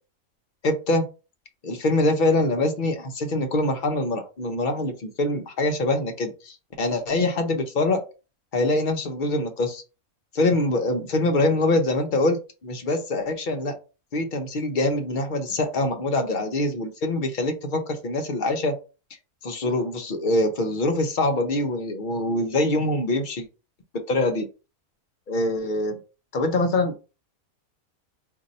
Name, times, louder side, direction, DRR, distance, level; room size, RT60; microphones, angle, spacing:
voice 1, 0.6-1.1 1.6-8.0 8.5-9.8 10.3-13.7 14.1-18.7 19.4-23.5 24.1-24.5 25.3-26.0 26.3-27.1, left 2 dB, 55° left, 5 dB, 0.6 m, -24 dB
2.6 x 2.6 x 4.1 m, 0.32 s
omnidirectional pair, 1.5 m